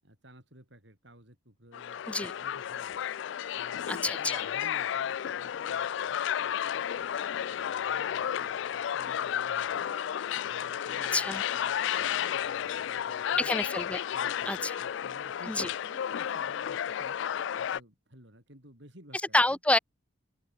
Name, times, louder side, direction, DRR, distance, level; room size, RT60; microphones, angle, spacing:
voice 1, 0.0-3.0 3.6-7.0 7.5-9.9 10.5-13.5 14.1-17.2 17.6-19.6, right 1 dB, 60° right, 7.7 m, -55 dB
sound 1, 1.7-17.8, left 9 dB, 65° left, 0.3 m, -32 dB
voice 2, 3.9-4.5 11.1-11.4 13.4-14.0 14.5-14.8 15.5-15.7 19.3-19.8, left 2 dB, 5° left, 0.5 m, -28 dB
open air
head